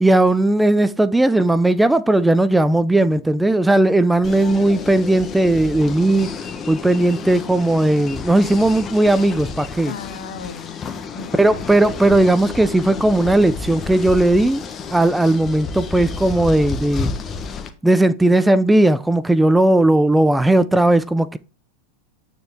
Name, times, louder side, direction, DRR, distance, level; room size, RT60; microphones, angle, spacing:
voice 1, 0.0-6.3 6.7-9.9 11.4-14.6 14.9-17.1 17.8-21.4, right 1 dB, 5° right, 0.4 m, -16 dB
sound 1, 4.2-17.7, left 5 dB, 30° left, 1.1 m, -31 dB
voice 2, 9.8-11.6, left 6 dB, 80° left, 1.4 m, -35 dB
9.1 x 4.4 x 3.6 m
hypercardioid pair, 110°, 0 cm